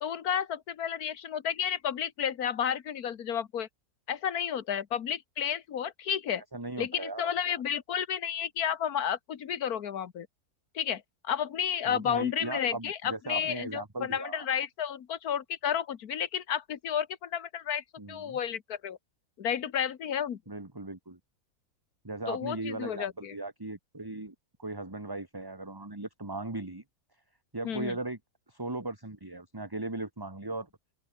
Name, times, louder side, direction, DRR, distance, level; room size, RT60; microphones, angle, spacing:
voice 1, 0.0-3.7 4.1-6.4 6.8-10.3 10.8-19.0 19.4-20.4 22.3-23.4 27.6-28.0, left 8 dB, 85° left, 1.7 m, -32 dB
voice 2, 6.5-7.6 11.9-14.5 18.0-18.4 20.5-21.2 22.0-26.8 27.5-28.2 28.5-30.7, right 2 dB, 15° right, 2.0 m, -38 dB
open air
omnidirectional pair, 1.5 m